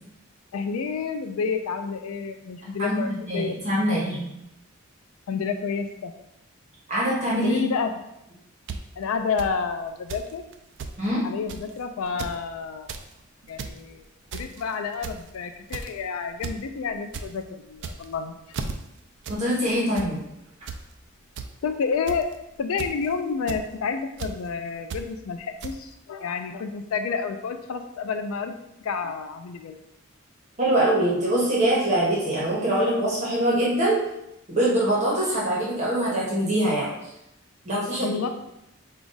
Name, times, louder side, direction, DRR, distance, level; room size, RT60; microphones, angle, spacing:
voice 1, 0.5-3.6 5.3-6.1 7.4-7.9 9.0-10.4 11.2-12.9 13.5-14.0 14.3-18.4 21.6-22.3 22.6-28.5 28.8-29.7 38.0-38.3, left 5 dB, 75° left, 7 dB, 0.4 m, -29 dB
voice 2, 2.8-4.3 6.9-7.6 11.0-11.2 19.3-20.2 30.6-34.0 34.5-36.9 37.6-38.1, right 1 dB, 35° right, -6 dB, 1.1 m, -23 dB
sound 1, 8.7-8.8 9.4-9.5 10.1-10.3 10.5-10.6 10.8-11.0 11.5-11.7 12.1-12.4 12.7-13.0 13.4-13.8 14.3-14.6 15.0-15.3 15.7-16.0 16.4-16.6 16.9-17.3 17.7-18.2 18.5-18.7 19.2-19.4 19.7-20.1 20.7-20.8 21.4-21.5 22.1-22.3 22.8-23.1 23.5-23.6 24.2-24.3 24.9-25.0 25.6-25.7, right 5 dB, 60° right, 0.4 m, -34 dB
5.0 x 2.3 x 3.9 m, 0.85 s
head